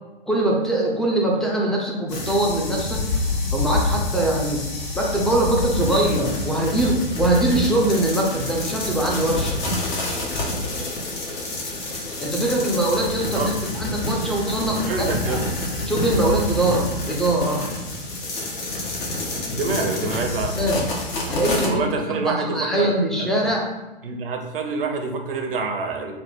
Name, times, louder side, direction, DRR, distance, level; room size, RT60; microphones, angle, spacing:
voice 1, 0.3-3.0 3.5-4.6 4.9-9.5 12.2-15.4 15.9-17.6 20.5-20.9 21.3-23.7, right 1 dB, ahead, -2 dB, 0.6 m, -22 dB
sound 1, 2.1-21.7, left 2 dB, 60° left, 1.3 m, -27 dB
voice 2, 14.8-15.4 19.5-20.6 21.7-22.9 23.2-23.3 24.0-26.2, right 4 dB, 70° right, 4 dB, 0.8 m, -26 dB
3.4 x 2.1 x 4.2 m, 1.1 s
hypercardioid pair, 115°, 29 cm